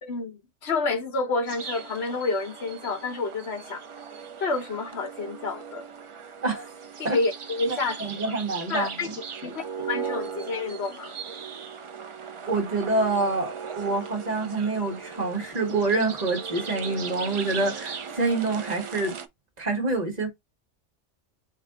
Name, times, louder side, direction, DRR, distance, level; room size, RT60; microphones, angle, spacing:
voice 1, 0.0-3.8 4.4-5.9 7.0-8.3 8.7-9.1 9.4-11.1, left 3 dB, 60° left, 1.3 m, -29 dB
sound 1, 1.5-19.3, right 6 dB, 50° right, 0.3 m, -38 dB
voice 2, 7.7-9.2 12.5-19.1 19.6-20.3, right 3 dB, 35° right, 1.7 m, -27 dB
3.9 x 3.2 x 3.7 m
omnidirectional pair, 1.2 m